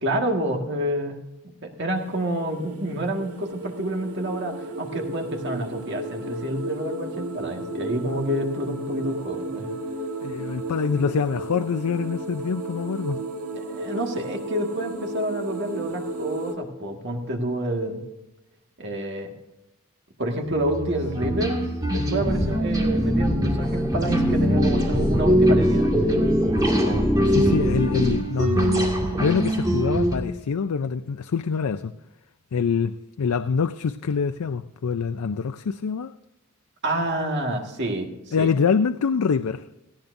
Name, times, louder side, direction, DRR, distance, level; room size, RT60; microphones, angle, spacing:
voice 1, 0.0-1.2 1.6-9.7 13.5-18.0 18.8-19.3 20.2-21.6 21.9-26.3 26.8-27.1 36.8-38.5, right 1 dB, 50° right, 1.7 m, -28 dB
sound 1, 1.9-16.6, right 2 dB, 75° right, 1.7 m, -34 dB
voice 2, 10.2-13.2 27.3-28.9 29.2-31.9 32.5-36.1 38.3-39.7, left 5 dB, 90° left, 0.5 m, -25 dB
sound 2, 20.5-30.2, equal, 15° right, 2.0 m, -24 dB
sound 3, 22.2-28.2, equal, ahead, 0.6 m, -24 dB
17.5 x 15.0 x 2.6 m
head